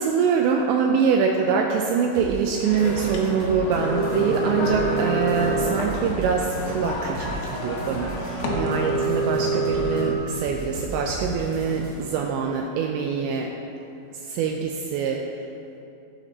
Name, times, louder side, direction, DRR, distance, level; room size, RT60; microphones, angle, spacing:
voice 1, 0.0-13.5 14.3-15.2, right 6 dB, 90° right, 2 dB, 2.6 m, -24 dB
sound 1, 2.1-3.8 4.0-5.0 5.3-8.8 9.0-10.0 10.3-12.2, right 1 dB, 45° right, 2.3 m, -36 dB
sound 2, 2.6-10.1, right 1 dB, 80° left, 1.7 m, -27 dB
16.0 x 6.9 x 4.2 m, 2.7 s
omnidirectional pair, 5.7 m